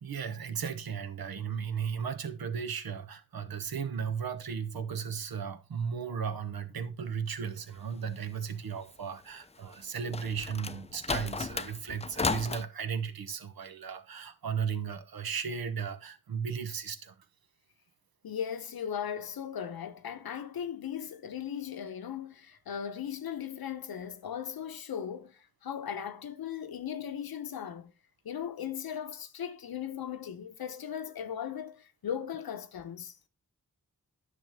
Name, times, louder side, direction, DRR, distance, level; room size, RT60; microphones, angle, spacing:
voice 1, 0.0-17.1, right 6 dB, 85° right, 1.0 m, -35 dB
sound 1, 9.7-12.6, left 4 dB, 20° left, 0.4 m, -34 dB
voice 2, 18.2-27.9 28.2-33.2, left 8 dB, 85° left, 0.9 m, -38 dB
10.0 x 6.1 x 3.6 m
cardioid pair, 40°, 35 cm